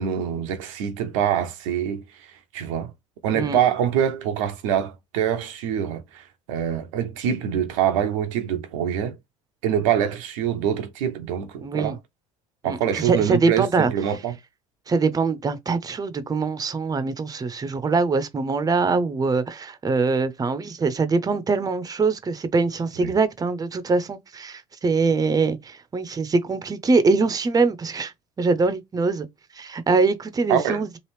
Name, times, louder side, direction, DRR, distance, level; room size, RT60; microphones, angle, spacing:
voice 1, 0.0-2.0 2.5-2.9 3.2-9.2 9.6-12.0 12.6-14.3 23.0-23.1 30.5-30.8, right 9 dB, 70° right, 0.7 m, -25 dB
voice 2, 11.6-11.9 12.6-13.9 14.9-28.1 28.4-29.3 29.6-30.9, right 4 dB, 20° right, 0.7 m, -23 dB
3.2 x 2.4 x 3.3 m
hypercardioid pair, 65°, 17 cm